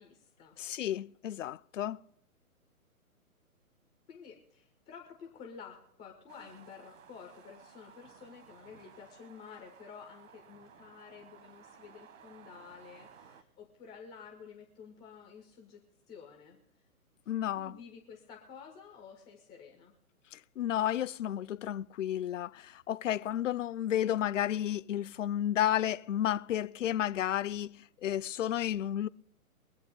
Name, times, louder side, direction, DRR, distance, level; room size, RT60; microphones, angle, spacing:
voice 1, 0.0-0.6 4.1-15.8 16.1-16.6 17.5-19.9, left 6 dB, 5° left, 0.4 m, -51 dB
voice 2, 0.6-2.0 17.3-17.8 20.3-29.1, left 11 dB, 55° left, 0.5 m, -32 dB
sound 1, 6.3-13.4, right 7 dB, 60° right, 1.5 m, -57 dB
23.0 x 7.8 x 3.6 m
figure-of-eight pair, 130°, 44 cm